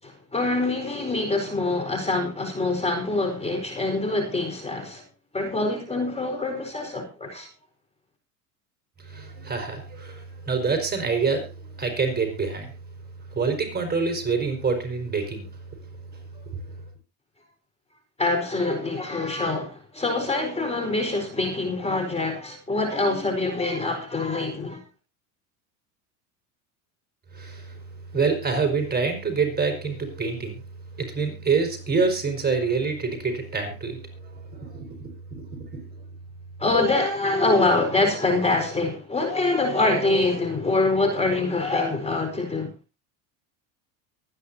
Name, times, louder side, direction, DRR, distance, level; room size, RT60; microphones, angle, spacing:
voice 1, 0.0-5.0 5.3-7.5 18.2-24.8 36.6-42.7, left 2 dB, 15° left, 4.6 m, -25 dB
voice 2, 9.0-12.7 13.3-15.5 27.3-27.8 28.1-30.6 31.0-35.8, right 4 dB, 20° right, 5.0 m, -26 dB
23.5 x 9.8 x 2.8 m
hypercardioid pair, 90°, 45 cm